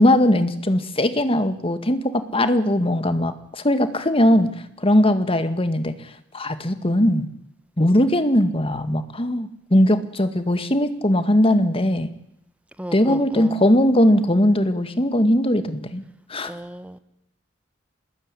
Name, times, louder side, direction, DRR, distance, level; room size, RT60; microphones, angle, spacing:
voice 1, 0.0-4.5 4.8-5.9 6.3-7.3 7.8-12.1 12.9-16.0 16.3-16.6, left 1 dB, 30° left, 10 dB, 1.9 m, -19 dB
voice 2, 12.8-13.6 16.4-17.0, right 1 dB, 5° right, 12 dB, 1.4 m, -35 dB
25.5 x 20.5 x 9.9 m, 0.78 s
head